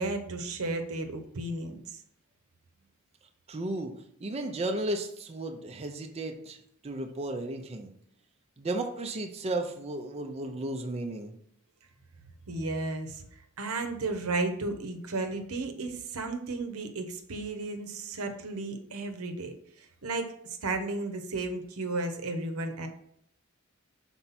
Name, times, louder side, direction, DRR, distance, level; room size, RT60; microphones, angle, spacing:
voice 1, 0.0-2.0 12.5-13.3 13.6-20.3 20.6-22.9, right 2 dB, 85° right, 6 dB, 0.9 m, -34 dB
voice 2, 3.5-3.9 4.2-6.6 6.8-7.9 8.6-11.3, right 2 dB, 30° right, 4 dB, 0.5 m, -34 dB
5.7 x 4.4 x 4.1 m, 0.69 s
head